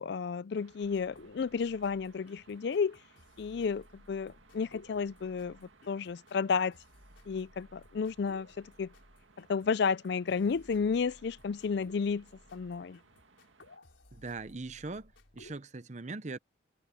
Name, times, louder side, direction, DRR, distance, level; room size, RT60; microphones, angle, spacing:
voice 1, 0.0-3.0 3.4-6.8 7.3-8.9 9.4-12.3 12.5-13.0, left 5 dB, 60° left, 0.4 m, -32 dB
sound 1, 0.5-13.8, right 4 dB, 85° right, 2.1 m, -63 dB
sound 2, 0.8-15.6, left 1 dB, 85° left, 4.2 m, -58 dB
voice 2, 14.1-16.4, right 3 dB, 40° right, 0.8 m, -41 dB
head